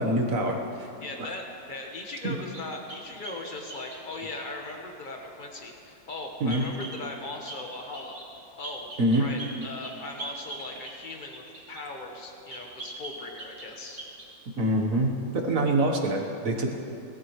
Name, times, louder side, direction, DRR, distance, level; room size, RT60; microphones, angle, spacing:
voice 1, 0.0-0.6 1.2-1.3 2.2-2.3 6.4-6.7 9.0-9.3 14.6-16.7, right 1 dB, 45° right, 2 dB, 1.5 m, -25 dB
voice 2, 0.7-8.2 8.6-8.9 9.2-14.0, left 2 dB, 30° left, 1 dB, 1.2 m, -39 dB
sound 1, 2.5-4.4 6.5-7.0 7.5-7.6 7.9-8.3 8.6-11.9 12.5-13.7 14.0-14.3, right 2 dB, 25° right, 2.5 m, -42 dB
19.5 x 13.5 x 3.2 m, 2.7 s
omnidirectional pair, 2.1 m